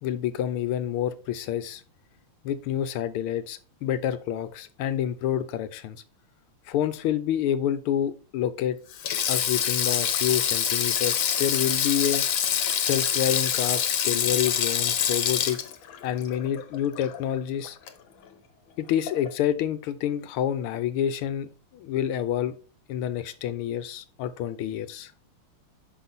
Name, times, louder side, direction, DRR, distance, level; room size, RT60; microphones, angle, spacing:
voice 1, 0.0-1.8 2.4-6.0 6.7-8.8 9.3-12.3 12.8-15.6 16.0-17.8 18.8-22.5 22.9-25.1, left 10 dB, 85° left, 1.6 m, -28 dB
Sink (filling or washing), 8.9-17.4 17.6-17.9 19.1-19.3, left 9 dB, 70° left, 1.5 m, -26 dB
6.0 x 5.4 x 4.0 m
omnidirectional pair, 2.4 m